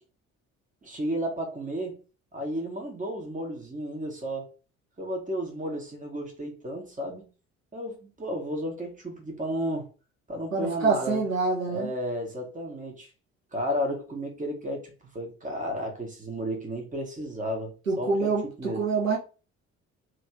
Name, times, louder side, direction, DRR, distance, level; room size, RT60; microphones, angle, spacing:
voice 1, 0.8-2.0 2.3-4.5 5.0-7.3 7.7-9.9 10.3-11.2 11.7-13.1 13.5-18.3 18.6-18.8, equal, 20° right, 1.7 m, -33 dB
voice 2, 10.5-11.9 17.9-19.2, right 4 dB, 85° right, 0.8 m, -26 dB
3.4 x 3.2 x 4.7 m
figure-of-eight pair, 50°, 39 cm